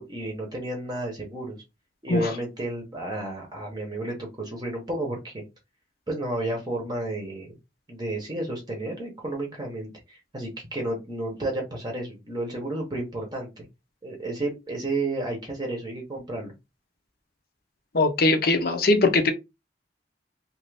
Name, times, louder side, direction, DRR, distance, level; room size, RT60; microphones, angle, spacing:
voice 1, 0.0-1.6 2.0-5.4 6.1-7.5 7.9-13.6 14.0-16.5, right 1 dB, 25° right, 0.8 m, -32 dB
voice 2, 17.9-19.3, left 2 dB, 55° left, 0.7 m, -21 dB
2.6 x 2.5 x 3.2 m
head